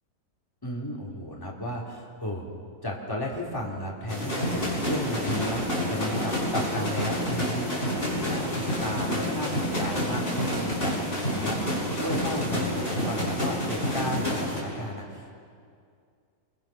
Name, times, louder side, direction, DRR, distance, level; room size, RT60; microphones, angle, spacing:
voice 1, 0.6-2.5 2.8-8.5 8.8-15.3, left 1 dB, 15° left, -3 dB, 3.3 m, -34 dB
sound 1, 4.1-14.6, equal, 35° left, 6.0 m, -28 dB
26.0 x 23.5 x 6.0 m, 2.3 s
omnidirectional pair, 1.7 m